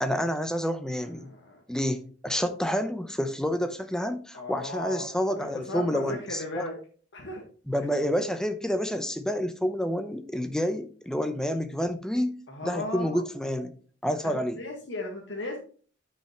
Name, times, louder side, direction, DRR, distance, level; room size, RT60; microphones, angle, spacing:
voice 1, 0.0-1.3 1.7-6.6 7.7-13.7 14.0-14.6, equal, 5° left, 0.8 m, -29 dB
voice 2, 0.9-1.6 4.3-5.0 5.4-6.8 7.1-7.4 12.5-13.2 14.2-15.6, left 2 dB, 90° left, 1.6 m, -36 dB
9.8 x 5.7 x 3.0 m
head